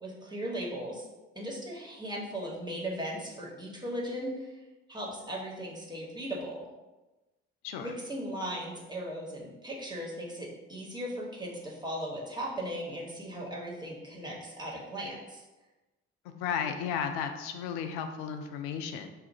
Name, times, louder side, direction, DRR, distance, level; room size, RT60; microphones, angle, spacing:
voice 1, 0.0-1.1 1.3-4.6 4.9-6.7 7.8-15.4, equal, 15° right, -4 dB, 1.1 m, -37 dB
voice 2, 16.2-19.1, left 7 dB, 70° left, 6 dB, 0.5 m, -34 dB
2.7 x 2.4 x 4.1 m, 1.1 s
figure-of-eight pair, 45°, 33 cm